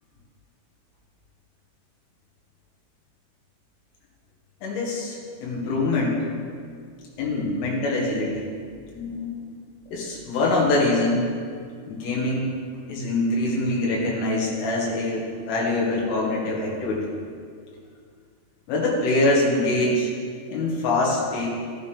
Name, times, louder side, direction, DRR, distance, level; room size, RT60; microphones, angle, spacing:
voice 1, 4.6-6.3 7.2-8.5 8.9-9.5 9.9-11.3 11.9-12.5 12.9-17.1 18.7-20.1 20.5-21.5, left 2 dB, 90° left, -4 dB, 4.4 m, -24 dB
13.5 x 13.0 x 3.5 m, 2.1 s
omnidirectional pair, 5.5 m